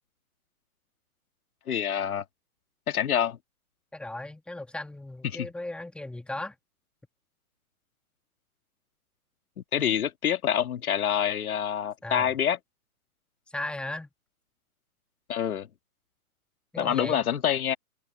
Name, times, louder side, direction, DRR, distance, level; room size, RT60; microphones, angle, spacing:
voice 1, 1.7-2.2 2.9-3.4 5.3-5.5 9.7-12.6 15.3-15.7 16.8-17.8, left 9 dB, 75° left, 2.2 m, -26 dB
voice 2, 3.9-6.6 12.0-12.3 13.5-14.1 16.7-17.2, left 2 dB, ahead, 1.8 m, -36 dB
hypercardioid pair, 140°, 43 cm